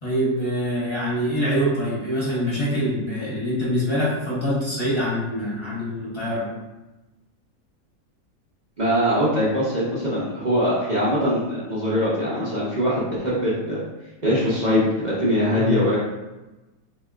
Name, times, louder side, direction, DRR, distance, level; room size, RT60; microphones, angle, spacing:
voice 1, 0.0-6.4 15.5-15.8, equal, 20° left, -8 dB, 0.8 m, -24 dB
voice 2, 8.8-13.8 14.2-16.0, equal, 45° right, -8 dB, 0.6 m, -22 dB
3.3 x 2.8 x 2.4 m, 1.1 s
omnidirectional pair, 1.7 m